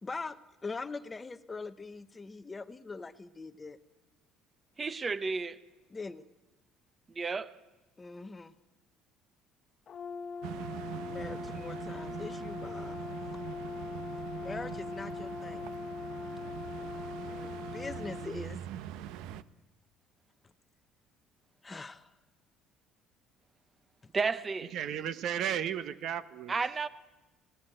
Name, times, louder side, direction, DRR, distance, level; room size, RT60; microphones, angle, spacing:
voice 1, 0.0-3.8 5.9-6.2 8.0-8.5 11.1-13.0 14.4-15.7 17.2-18.6 21.6-22.1, left 3 dB, 15° left, 0.8 m, -42 dB
voice 2, 4.8-5.6 7.1-7.5 24.1-24.7 26.5-26.9, right 4 dB, 20° right, 0.9 m, -32 dB
Brass instrument, 9.9-18.3, left 4 dB, 35° left, 1.4 m, -41 dB
sound 1, 10.4-19.4, right 11 dB, 85° right, 0.9 m, -43 dB
voice 3, 24.7-26.5, right 9 dB, 50° right, 1.1 m, -34 dB
30.0 x 17.5 x 9.0 m
cardioid pair, 160°, 0 cm